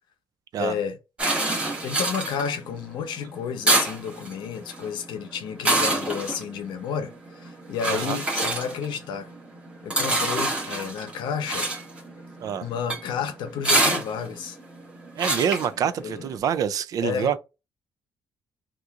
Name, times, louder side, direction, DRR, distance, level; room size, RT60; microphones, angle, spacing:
voice 1, 0.6-1.0 1.8-9.3 9.8-11.7 12.6-14.6 15.8-16.2 17.0-17.3, left 7 dB, 85° left, 0.7 m, -31 dB
sound 1, 1.2-16.4, right 2 dB, 15° right, 1.0 m, -27 dB
voice 2, 15.2-17.4, right 8 dB, 50° right, 0.4 m, -26 dB
2.9 x 2.5 x 3.4 m
cardioid pair, 180°, 8 cm